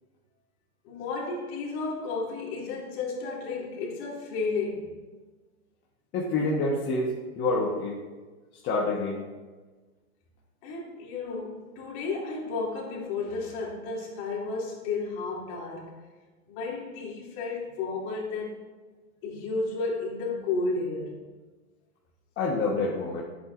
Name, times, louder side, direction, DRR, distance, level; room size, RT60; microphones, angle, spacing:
voice 1, 0.8-5.0 10.6-15.9 16.5-18.6 19.2-21.3, left 3 dB, 45° left, -3 dB, 2.8 m, -32 dB
voice 2, 6.1-8.0 8.6-9.2 22.4-23.2, left 2 dB, 25° left, -4 dB, 1.2 m, -27 dB
10.5 x 8.1 x 2.5 m, 1.3 s
hypercardioid pair, 135°, 44 cm